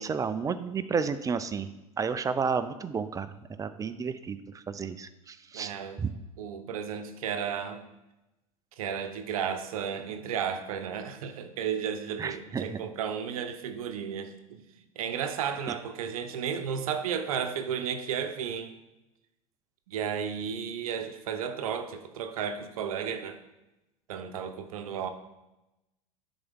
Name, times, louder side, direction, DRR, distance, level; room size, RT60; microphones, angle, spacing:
voice 1, 0.0-1.7 2.0-3.3 3.6-5.7 6.0-6.1 12.2-12.8, right 5 dB, 20° right, 12 dB, 0.4 m, -31 dB
voice 2, 5.5-6.0 6.4-7.9 8.8-14.6 15.0-18.7 19.9-23.4 24.1-25.1, right 7 dB, 75° right, 8 dB, 0.7 m, -33 dB
9.8 x 4.1 x 3.5 m, 0.97 s
hypercardioid pair, 90°, 18 cm